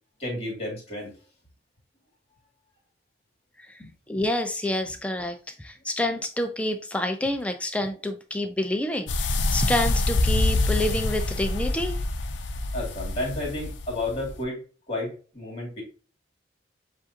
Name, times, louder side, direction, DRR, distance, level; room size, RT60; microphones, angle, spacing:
voice 1, 0.2-1.1 3.8-3.9 12.7-15.8, left 1 dB, 35° left, -2 dB, 2.1 m, -32 dB
voice 2, 4.1-12.0, left 1 dB, 5° left, 7 dB, 0.4 m, -28 dB
sound 1, 9.1-14.4, left 2 dB, 85° left, 0.6 m, -26 dB
7.4 x 2.5 x 2.7 m, 0.36 s
head